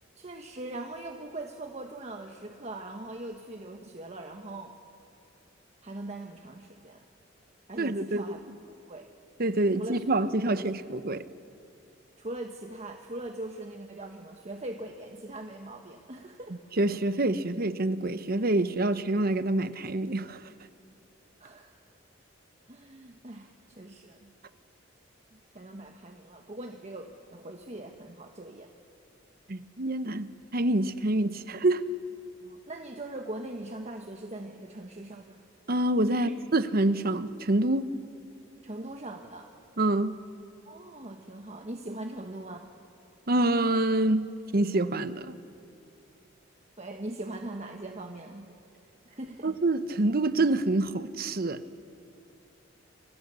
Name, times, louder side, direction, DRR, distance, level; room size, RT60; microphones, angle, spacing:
voice 1, 0.2-4.7 5.8-7.0 7.7-8.4 8.7-9.1 9.8-10.0 10.4-10.6 12.2-16.6 21.4-21.8 22.7-24.3 25.3-28.7 32.4-35.4 36.1-36.3 38.6-39.5 40.7-42.7 46.8-48.5 49.0-49.6, right 1 dB, 35° right, 1.3 m, -41 dB
voice 2, 7.8-8.4 9.4-11.2 16.8-20.4 29.5-30.3 30.5-31.9 35.7-37.8 39.8-40.2 43.3-44.2 44.5-45.4 49.4-51.6, right 2 dB, 50° right, 0.9 m, -26 dB
29.5 x 24.5 x 6.9 m
head